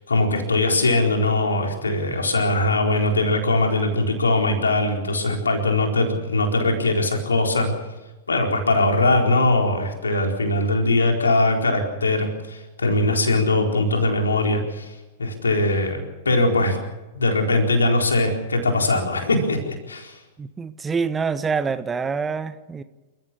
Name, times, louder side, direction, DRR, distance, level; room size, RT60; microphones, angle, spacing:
voice 1, 0.1-7.7 8.3-14.9 15.2-16.8 17.1-20.2, left 2 dB, 80° left, 2 dB, 4.2 m, -21 dB
voice 2, 20.4-22.8, right 5 dB, 15° right, 13 dB, 1.1 m, -26 dB
29.0 x 14.5 x 7.1 m, 1.1 s
figure-of-eight pair, 100°, 0 cm